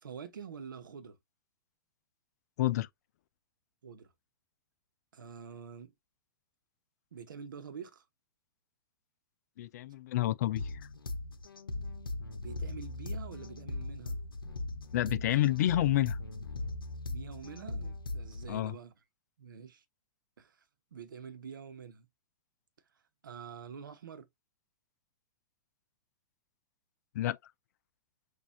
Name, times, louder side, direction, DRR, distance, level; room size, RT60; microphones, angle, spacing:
voice 1, 0.0-1.2 3.8-4.1 5.1-5.9 7.1-8.0 12.4-14.2 17.1-18.9 19.4-19.8 20.4-20.7 20.9-22.1 23.2-24.3, right 6 dB, 65° right, 0.9 m, -46 dB
voice 2, 9.6-10.7 14.9-16.2 18.5-18.7 27.1-27.4, left 14 dB, 50° left, 0.4 m, -29 dB
sound 1, 10.6-18.6, left 2 dB, 75° left, 0.7 m, -39 dB
6.1 x 2.5 x 2.6 m
figure-of-eight pair, 105°, 12 cm